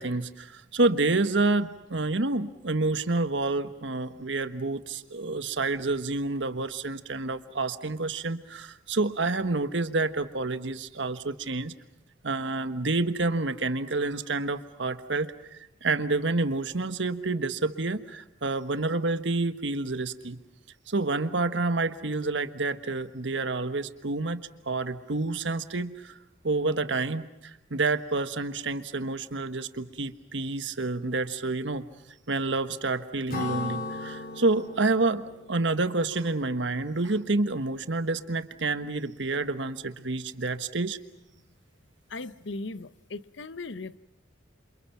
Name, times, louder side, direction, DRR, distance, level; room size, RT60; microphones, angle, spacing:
voice 1, 0.0-11.7 12.2-20.4 20.9-26.2 26.4-31.8 32.3-35.2 35.5-41.0, right 3 dB, 75° right, 1.4 m, -28 dB
Acoustic guitar / Strum, 33.3-36.9, left 3 dB, 50° left, 5.3 m, -38 dB
voice 2, 42.1-44.0, left 3 dB, 75° left, 0.8 m, -38 dB
28.5 x 27.5 x 5.9 m
head